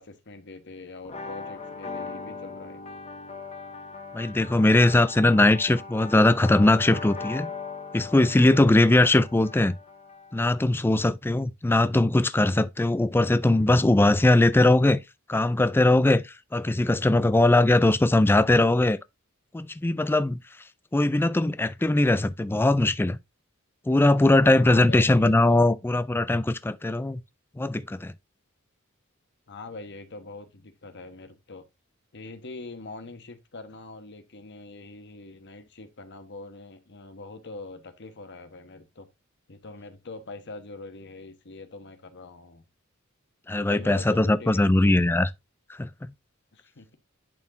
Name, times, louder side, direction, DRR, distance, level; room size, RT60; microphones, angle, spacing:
voice 1, 0.0-2.8 24.6-25.7 29.5-31.6 32.1-39.1 39.5-42.6 43.5-45.1 46.5-47.0, left 3 dB, 55° left, 1.2 m, -43 dB
sound 1, 1.0-10.6, left 4 dB, 30° left, 0.8 m, -39 dB
voice 2, 4.1-7.5 7.9-9.8 10.3-15.0 15.3-19.0 19.5-20.4 20.9-23.2 23.9-27.2 27.6-28.1 43.5-45.3 45.8-45.9, left 2 dB, 10° left, 0.3 m, -20 dB
10.5 x 4.3 x 2.6 m
head